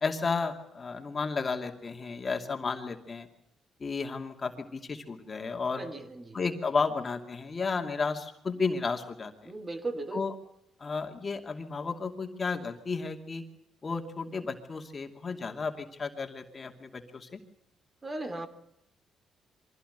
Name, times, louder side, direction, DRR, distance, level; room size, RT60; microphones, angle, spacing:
voice 1, 0.0-3.3 3.8-5.8 6.3-9.5 10.1-10.3 10.8-13.4 13.8-17.4, left 4 dB, 35° left, 4 dB, 2.6 m, -33 dB
voice 2, 5.8-6.4 9.4-10.2 18.0-18.5, right 2 dB, 25° right, 9 dB, 3.0 m, -36 dB
24.0 x 16.0 x 8.1 m, 0.81 s
cardioid pair, 90°, 0 cm